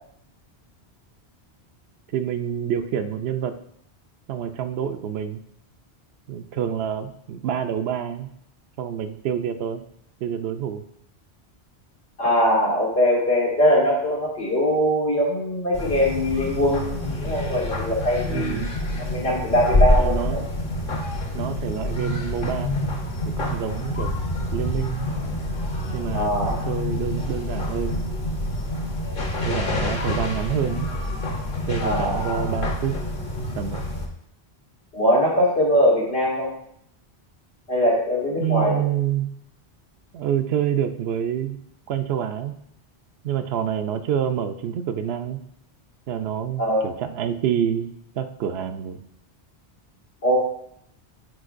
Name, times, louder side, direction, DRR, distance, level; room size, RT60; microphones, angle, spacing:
voice 1, 2.1-3.5 4.3-5.4 6.3-8.3 8.8-9.8 10.2-10.8 18.3-18.7 20.0-20.4 21.3-22.7 23.4-24.2 24.5-25.0 25.9-28.1 29.5-30.9 31.7-32.9 33.5-33.9 38.4-39.3 40.1-41.6 41.9-42.6 43.2-45.4 46.1-49.0, right 9 dB, 75° right, 9 dB, 0.8 m, -27 dB
voice 2, 12.2-18.6 19.0-20.4 26.1-26.6 31.8-32.4 34.9-36.5 37.7-38.8 46.6-46.9 50.2-50.4, equal, 90° left, -6 dB, 2.7 m, -22 dB
sound 1, 15.7-34.1, left 1 dB, 55° left, 1.1 m, -27 dB
11.0 x 4.6 x 2.5 m, 0.71 s
omnidirectional pair, 1.1 m